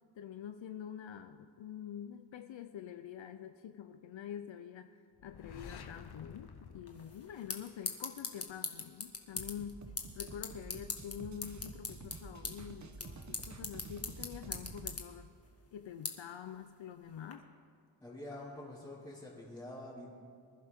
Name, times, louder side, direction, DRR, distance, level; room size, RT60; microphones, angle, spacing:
voice 1, 0.1-9.8 10.1-15.3 15.7-17.4, left 9 dB, 70° left, 8 dB, 0.7 m, -46 dB
sound 1, 5.2-8.0, left 6 dB, 55° left, 1.0 m, -51 dB
sound 2, 6.9-17.3, left 4 dB, 30° left, 1.6 m, -44 dB
sound 3, 9.3-15.0, right 4 dB, 35° right, 1.1 m, -49 dB
voice 2, 18.0-20.1, left 1 dB, 5° left, -11 dB, 3.7 m, -46 dB
25.0 x 11.0 x 3.7 m, 2.3 s
cardioid pair, 75°, 47 cm